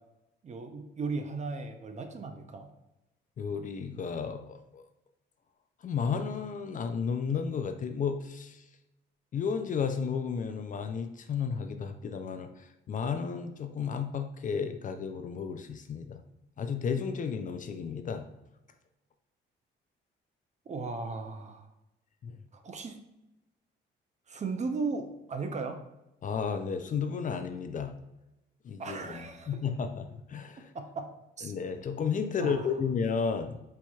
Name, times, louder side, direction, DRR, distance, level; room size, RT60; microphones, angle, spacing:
voice 1, 0.4-2.7 20.7-21.7 22.5-23.0 24.3-25.8 28.8-29.5 30.7-31.1 31.4-31.5 32.4-32.6, right 4 dB, 35° right, 6 dB, 0.5 m, -36 dB
voice 2, 3.4-4.8 5.8-8.6 9.3-16.2 16.6-18.3 22.2-22.4 26.2-27.9 28.6-30.7 31.4-33.6, left 6 dB, 40° left, 7 dB, 0.4 m, -33 dB
4.4 x 2.8 x 2.3 m, 0.93 s
cardioid pair, 90°, 20 cm